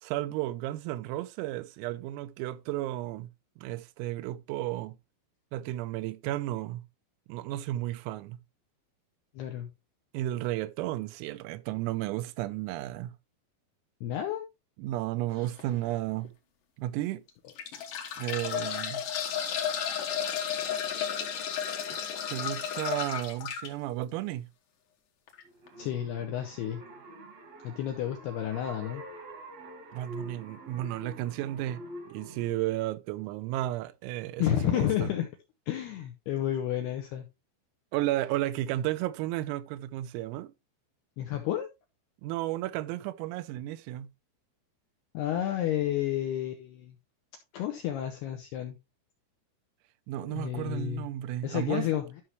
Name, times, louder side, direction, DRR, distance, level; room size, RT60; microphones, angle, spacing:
voice 1, 0.0-3.3 3.6-5.0 5.5-6.8 7.3-8.4 10.1-13.2 14.8-16.3 16.8-17.2 18.2-19.0 22.3-24.5 29.9-31.8 32.1-35.1 37.9-40.5 42.2-44.1 50.1-51.9, right 15 dB, 90° right, 3.4 m, -33 dB
voice 2, 9.4-9.7 14.0-14.4 25.8-26.8 27.6-29.0 34.4-35.3 35.7-37.3 41.2-41.7 45.1-47.0 47.5-48.8 50.2-51.1 51.4-52.1, left 11 dB, 80° left, 2.4 m, -31 dB
sound 1, 15.4-15.6 16.2-16.3 17.3-23.7 25.3-25.4 25.7-25.8, left 8 dB, 65° left, 2.2 m, -33 dB
sound 2, 25.4-32.6, right 1 dB, 60° right, 1.7 m, -46 dB
13.0 x 5.7 x 3.1 m
omnidirectional pair, 6.0 m